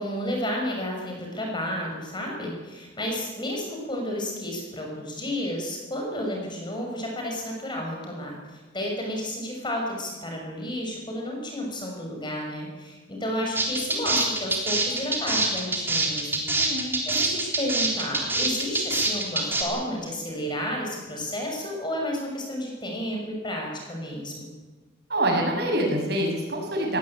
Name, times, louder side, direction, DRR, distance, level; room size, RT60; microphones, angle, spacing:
voice 1, 0.0-24.5, left 1 dB, 25° left, 0 dB, 6.4 m, -32 dB
sound 1, 13.5-19.6, right 2 dB, 10° right, 3.7 m, -25 dB
voice 2, 16.5-16.9 25.1-27.0, right 1 dB, 55° right, 1 dB, 7.2 m, -25 dB
20.5 x 18.0 x 8.9 m, 1.2 s
head